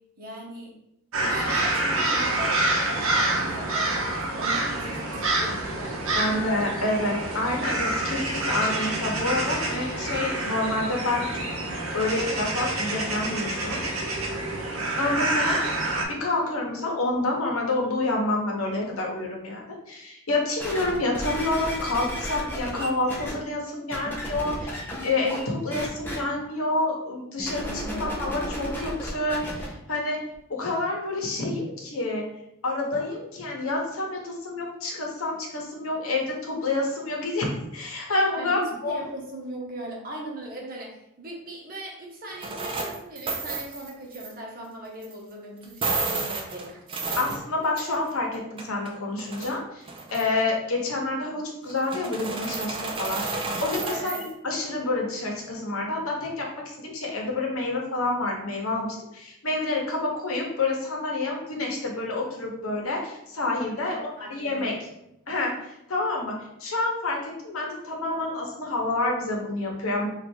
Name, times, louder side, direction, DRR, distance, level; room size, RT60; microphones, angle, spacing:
voice 1, 0.2-0.7 1.2-6.6 27.6-28.5 38.4-47.2 53.9-54.2 63.8-64.7, right 1 dB, 45° right, -2 dB, 1.0 m, -39 dB
sound 1, 1.1-16.0, right 2 dB, 75° right, 0.8 m, -27 dB
voice 2, 6.1-11.5 11.9-13.9 15.0-15.7 16.1-19.6 19.9-27.7 28.0-30.2 30.5-32.3 32.6-39.1 47.2-54.1 54.4-64.9 65.3-70.1, left 2 dB, 75° left, -1 dB, 0.9 m, -28 dB
sound 2, 20.6-23.3 23.9-25.4 25.7-26.2 27.4-29.7 30.3-30.4, equal, 10° left, 0.7 m, -33 dB
sound 3, 42.4-44.3 45.0-45.1 45.6-48.1 48.3-49.6 49.9-50.4 51.7-54.3, right 3 dB, 25° right, 0.4 m, -31 dB
3.2 x 2.5 x 4.4 m, 0.82 s
head